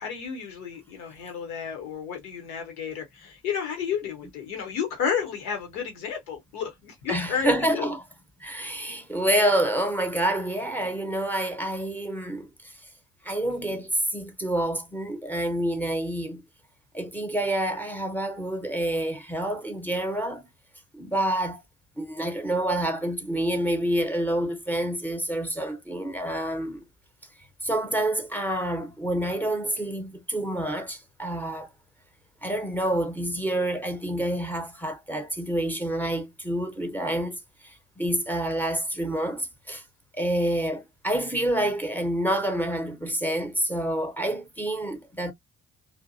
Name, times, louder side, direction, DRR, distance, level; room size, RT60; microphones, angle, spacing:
voice 1, 0.0-7.9, left 7 dB, 85° left, 0.9 m, -32 dB
voice 2, 7.1-8.0 8.4-12.5 13.2-16.4 16.9-20.4 20.9-21.6 22.0-26.8 27.6-31.7 32.4-37.4 37.6-39.8 40.1-45.3, right 1 dB, 5° left, 0.6 m, -28 dB
2.5 x 2.1 x 2.6 m
hypercardioid pair, 40°, 43 cm